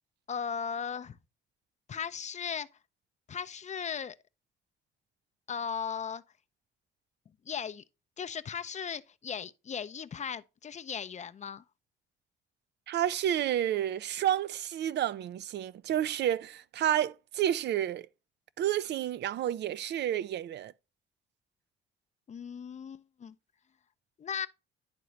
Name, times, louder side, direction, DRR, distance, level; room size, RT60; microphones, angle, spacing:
voice 1, 0.3-1.2 1.9-2.7 3.3-4.2 5.5-6.2 7.5-7.8 8.2-11.6 22.3-23.3 24.2-24.5, left 7 dB, 35° left, 0.5 m, -37 dB
voice 2, 12.9-18.1 18.6-20.7, right 11 dB, 60° right, 0.4 m, -30 dB
10.5 x 3.8 x 3.1 m
cardioid pair, 90°, 20 cm